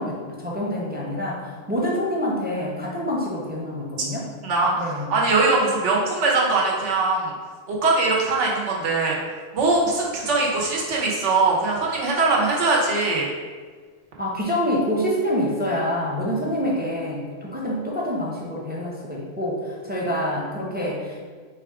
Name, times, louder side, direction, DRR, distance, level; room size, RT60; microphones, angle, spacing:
voice 1, 0.0-4.3 4.8-5.1 14.2-21.2, equal, 10° right, -4 dB, 0.4 m, -26 dB
voice 2, 4.4-7.3 7.7-9.2 9.5-13.3, right 3 dB, 75° right, -2 dB, 1.2 m, -21 dB
4.2 x 2.4 x 4.7 m, 1.5 s
omnidirectional pair, 1.2 m